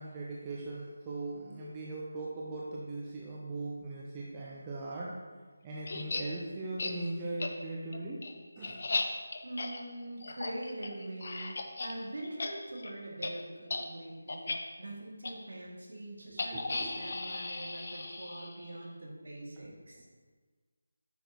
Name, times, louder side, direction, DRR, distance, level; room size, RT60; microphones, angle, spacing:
voice 1, 0.0-5.2 5.6-8.2 8.6-8.8 16.3-16.9 19.6-19.7, right 2 dB, 15° right, -5 dB, 0.8 m, -39 dB
sound 1, 5.9-6.2 6.8-6.9 7.4-7.5 7.9-11.9 12.2-12.5 12.8-12.9 13.2-13.3 13.7-13.8 14.3-14.6 15.2-15.3 16.4-18.7, left 3 dB, 45° left, 0.7 m, -36 dB
voice 2, 9.4-14.5 14.8-20.0, right 1 dB, 55° right, -3 dB, 2.2 m, -43 dB
9.8 x 6.0 x 3.0 m, 1.4 s
figure-of-eight pair, 160°, 0 cm